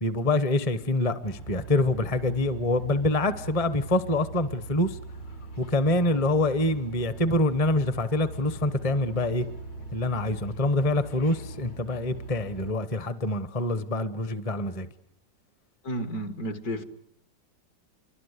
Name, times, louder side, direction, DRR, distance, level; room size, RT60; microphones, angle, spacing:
voice 1, 0.0-5.0 5.6-9.5 9.9-14.9, left 2 dB, 25° left, 0.8 m, -26 dB
sound 1, 1.2-12.7, right 2 dB, 85° left, 4.9 m, -41 dB
voice 2, 15.8-16.8, right 1 dB, 60° left, 2.1 m, -32 dB
27.5 x 24.0 x 8.2 m
omnidirectional pair, 1.9 m